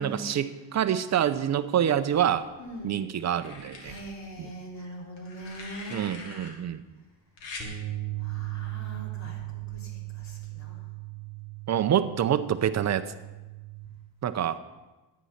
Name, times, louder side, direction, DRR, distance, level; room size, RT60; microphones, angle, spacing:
voice 1, 0.0-2.5 2.8-4.0 4.4-4.5 5.9-6.8 11.7-13.0 14.2-14.6, right 9 dB, 40° right, 12 dB, 0.6 m, -26 dB
sound 1, 2.1-2.8 3.4-4.0 5.2-6.5 7.4-7.7 9.1-9.3, left 3 dB, 80° left, 2.9 m, -43 dB
voice 2, 2.6-3.1 3.8-6.2 8.2-10.8, right 1 dB, 40° left, 0 dB, 3.5 m, -42 dB
sound 2, 7.6-13.9, right 17 dB, 15° left, 3.4 m, -37 dB
13.0 x 9.6 x 5.7 m, 1.1 s
cardioid pair, 120°, 44 cm